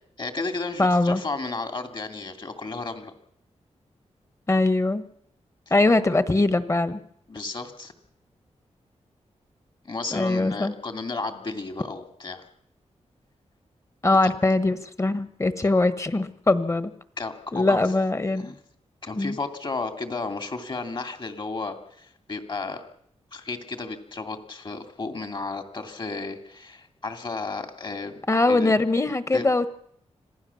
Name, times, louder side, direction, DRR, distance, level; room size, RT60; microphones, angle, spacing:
voice 1, 0.2-3.1 7.3-7.9 9.8-12.4 14.2-14.3 17.2-17.8 18.4-18.5 19.0-22.8 23.3-28.2 28.5-28.7 29.3-29.4, left 3 dB, 40° left, 7 dB, 2.8 m, -33 dB
voice 2, 0.8-1.2 4.5-5.0 5.7-7.0 10.1-10.7 14.0-16.9 17.5-18.5 19.2-19.4 28.3-29.7, left 2 dB, 25° left, 12 dB, 1.4 m, -22 dB
26.0 x 16.0 x 7.2 m, 0.71 s
wide cardioid pair, 100°, 12 cm